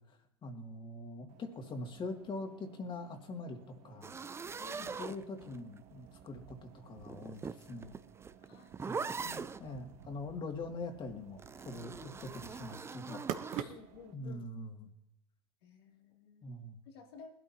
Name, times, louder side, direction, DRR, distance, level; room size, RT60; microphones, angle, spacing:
voice 1, 0.0-3.6 3.8-4.1 4.8-8.0 8.9-13.7 14.1-14.9 16.4-16.8, left 2 dB, 40° left, 4 dB, 2.4 m, -44 dB
sound 1, 1.3-14.1, right 10 dB, 60° right, 1.1 m, -50 dB
sound 2, 4.0-5.8 7.0-9.6 11.4-13.7, right 5 dB, 20° right, 0.5 m, -42 dB
voice 2, 4.6-5.0 8.5-9.8 13.7-14.5 15.6-16.5 16.8-17.3, left 6 dB, 75° left, 1 dB, 2.7 m, -55 dB
20.5 x 12.5 x 2.9 m, 0.86 s
hypercardioid pair, 80°, 13 cm